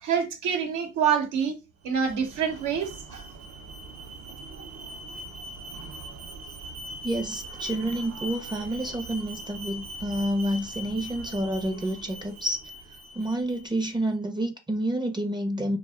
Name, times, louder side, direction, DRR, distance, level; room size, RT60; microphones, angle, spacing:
voice 1, 0.0-1.6 1.8-3.2, right 7 dB, 85° right, 0.8 m, -26 dB
Alarm, 1.9-13.9, right 1 dB, 60° right, 0.6 m, -41 dB
voice 2, 7.0-12.6 13.1-15.8, right 1 dB, 15° right, 0.5 m, -29 dB
2.5 x 2.2 x 3.4 m
cardioid pair, 90°, 30 cm